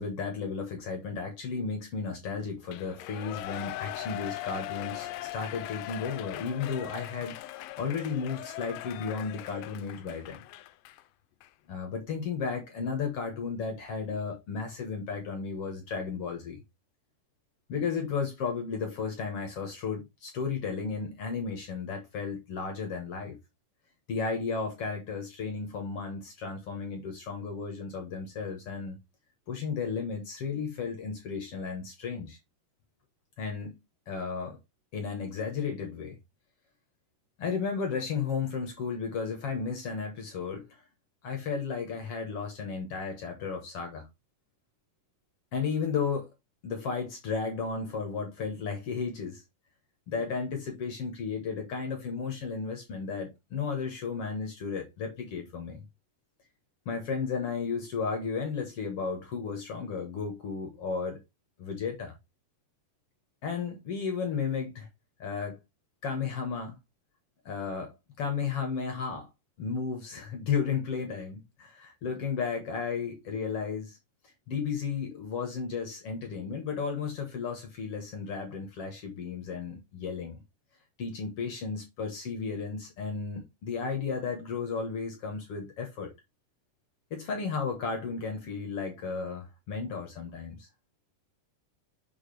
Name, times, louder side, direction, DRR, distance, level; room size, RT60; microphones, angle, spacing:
voice 1, 0.0-7.4 7.8-10.4 11.7-16.6 17.7-23.4 24.1-29.0 29.5-32.4 33.4-33.8 34.1-34.6 34.9-36.2 37.4-40.8 41.2-44.1 45.5-46.3 46.6-49.4 50.1-55.8 56.9-61.2 61.6-62.1 63.4-64.9 65.2-65.6 66.0-66.8 67.5-69.3 69.6-74.0 74.5-80.4 81.0-86.1 87.1-90.7, left 5 dB, 55° left, 2.0 m, -34 dB
Shout / Cheering, 2.7-11.0 11.4-11.5, left 15 dB, 80° left, 2.2 m, -40 dB
6.5 x 4.8 x 3.4 m
omnidirectional pair, 4.0 m